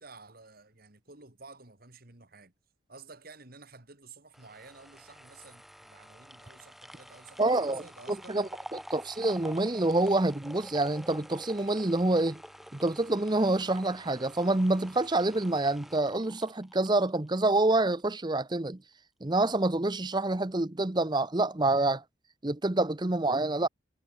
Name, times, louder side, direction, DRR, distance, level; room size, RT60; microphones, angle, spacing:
voice 1, 0.0-2.5 2.9-8.4, right 4 dB, 50° right, 2.6 m, -52 dB
sound 1, 4.3-17.6 17.9-18.0, equal, ahead, 5.1 m, -48 dB
voice 2, 7.4-7.8 8.1-12.4 12.7-18.8 19.2-22.0 22.4-23.7, right 2 dB, 25° right, 0.8 m, -27 dB
head